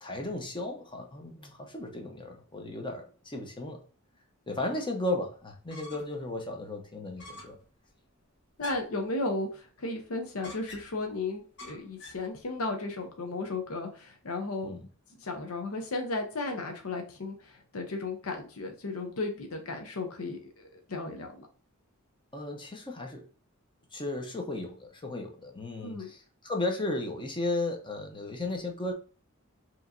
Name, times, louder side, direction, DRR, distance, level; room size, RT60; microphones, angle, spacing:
voice 1, 0.0-3.8 4.5-7.6 14.6-14.9 22.3-23.3 23.9-28.9, left 2 dB, 25° left, 0.8 m, -35 dB
sound 1, 5.7-6.2 6.6-6.7 7.2-7.6 8.6-9.1 10.4-11.1 11.6-12.3, left 1 dB, 55° left, 1.2 m, -44 dB
voice 2, 8.6-14.7 15.2-21.5 25.8-26.1, left 3 dB, 85° left, 0.7 m, -35 dB
4.7 x 3.0 x 2.6 m
head